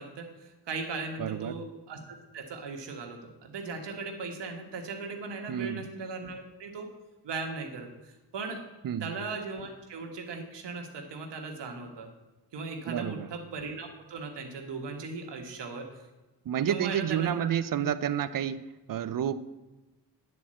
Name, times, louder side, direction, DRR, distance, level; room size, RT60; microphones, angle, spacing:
voice 1, 0.0-6.9 7.2-8.6 9.0-12.1 12.5-15.8 16.7-17.5, right 4 dB, 85° right, 3 dB, 1.5 m, -38 dB
voice 2, 1.2-1.6 5.5-5.9 8.8-9.1 12.9-13.3 16.5-18.6 18.9-19.4, right 9 dB, 55° right, 14 dB, 0.5 m, -30 dB
9.5 x 4.3 x 7.5 m, 1.1 s
cardioid pair, 95°, 41 cm